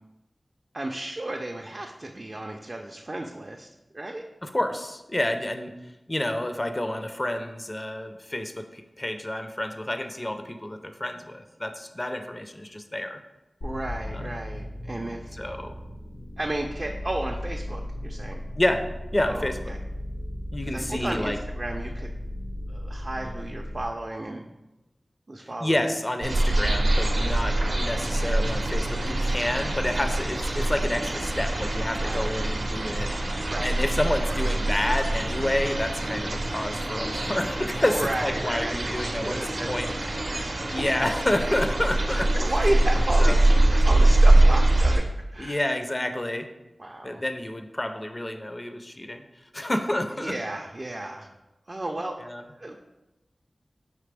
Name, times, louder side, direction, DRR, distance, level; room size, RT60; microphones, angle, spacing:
voice 1, 0.7-3.7 3.9-4.2 13.6-15.3 16.4-18.4 19.2-19.8 20.7-22.1 22.7-24.5 25.3-25.9 27.2-27.5 32.0-32.3 33.5-33.7 37.8-40.7 42.1-45.6 46.8-47.2 50.2-51.3 51.7-52.2 52.6-52.8, right 1 dB, 45° right, 1 dB, 0.4 m, -33 dB
voice 2, 4.4-13.2 14.1-14.3 15.3-15.8 18.6-18.8 19.1-19.7 20.5-21.4 25.6-39.9 40.7-42.3 43.2-43.4 45.4-46.5 47.0-50.4 52.2-52.4, left 1 dB, 30° left, 7 dB, 0.4 m, -29 dB
sound 1, 13.6-23.8, left 1 dB, 80° left, 0.7 m, -36 dB
sound 2, 26.2-45.0, right 1 dB, 90° right, 0.6 m, -23 dB
5.0 x 3.0 x 3.3 m, 0.99 s
cardioid pair, 45°, 0 cm